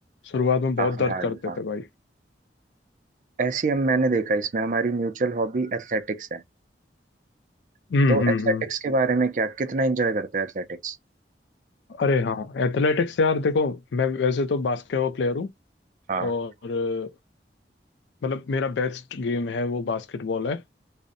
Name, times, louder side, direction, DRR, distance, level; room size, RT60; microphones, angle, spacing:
voice 1, 0.3-1.9 7.9-8.6 12.0-15.5 16.2-17.1 18.2-20.6, left 4 dB, 85° left, 0.4 m, -25 dB
voice 2, 0.8-1.6 3.4-6.4 8.1-11.0 16.1-16.3, right 3 dB, 45° right, 0.4 m, -25 dB
2.6 x 2.0 x 2.5 m
head